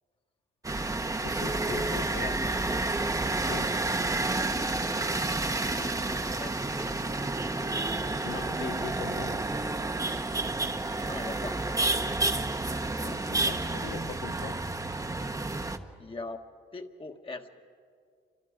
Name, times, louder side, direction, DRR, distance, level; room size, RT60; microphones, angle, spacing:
sound 1, 0.6-15.8, right 2 dB, 15° right, 1.1 m, -30 dB
voice 1, 1.2-2.4 3.5-3.7 8.2-9.4 13.0-14.6, left 9 dB, 80° left, 10 dB, 1.2 m, -40 dB
voice 2, 5.7-6.9 11.0-11.6 16.0-16.4 16.7-17.5, left 3 dB, 25° left, 4 dB, 1.5 m, -41 dB
28.5 x 24.5 x 5.2 m, 2.1 s
cardioid pair, 90°, 20 cm